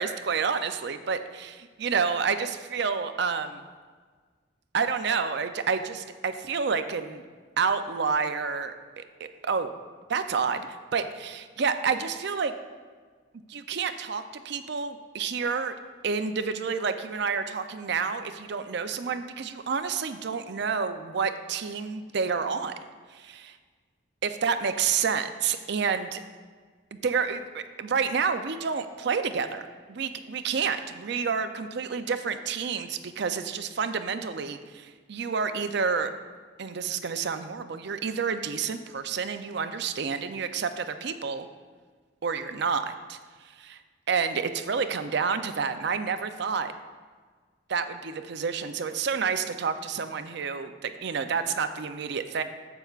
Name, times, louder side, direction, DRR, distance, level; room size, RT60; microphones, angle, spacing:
voice 1, 0.0-3.6 4.7-7.2 7.6-9.7 10.1-10.7 10.9-12.5 13.5-15.7 16.0-22.7 23.1-23.6 24.2-26.2 26.9-36.1 36.6-41.5 42.2-43.2 43.6-43.8 44.1-46.7 47.7-52.4, right 5 dB, 60° right, 9 dB, 0.5 m, -29 dB
11.5 x 7.9 x 2.4 m, 1.5 s
head